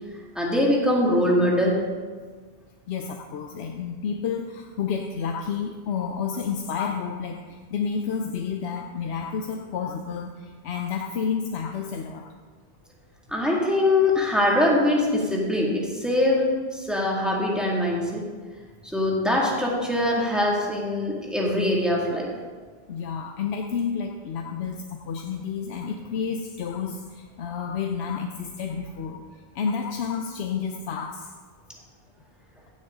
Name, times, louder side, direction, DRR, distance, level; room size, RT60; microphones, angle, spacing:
voice 1, 0.4-1.8 13.3-18.2 18.9-22.3, left 1 dB, ahead, -4 dB, 2.1 m, -23 dB
voice 2, 2.9-12.3 22.9-29.2 29.5-31.3, left 6 dB, 90° left, 4 dB, 0.9 m, -30 dB
15.0 x 7.9 x 3.7 m, 1.5 s
omnidirectional pair, 1.1 m